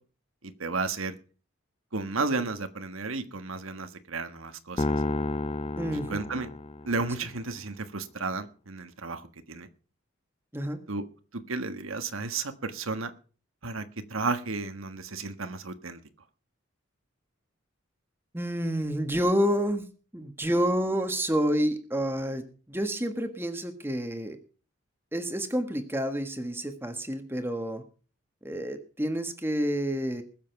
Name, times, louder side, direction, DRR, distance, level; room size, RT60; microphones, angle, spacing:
voice 1, 0.4-1.1 1.9-4.9 6.1-6.5 6.8-9.7 10.9-11.0 11.3-13.1 13.6-13.8 14.1-16.0, right 3 dB, 90° right, 9 dB, 1.5 m, -33 dB
sound 1, 4.8-7.2, left 2 dB, 30° left, 0.6 m, -31 dB
voice 2, 5.8-6.2 10.5-10.8 18.3-19.9 20.1-24.4 25.1-27.8 28.4-30.2, equal, 10° right, 7 dB, 1.5 m, -29 dB
20.0 x 7.5 x 5.9 m, 0.39 s
head